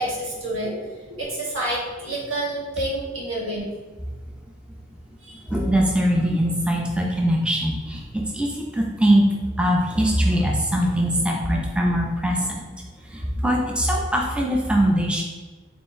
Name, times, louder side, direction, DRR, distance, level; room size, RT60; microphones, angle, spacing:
voice 1, 0.0-3.7 5.2-5.4, right 1 dB, 85° right, -5 dB, 1.2 m, -28 dB
voice 2, 5.5-8.0 8.3-9.3 9.6-12.7 13.1-15.2, equal, 5° right, -1 dB, 0.3 m, -21 dB
3.8 x 3.6 x 2.5 m, 1.3 s
head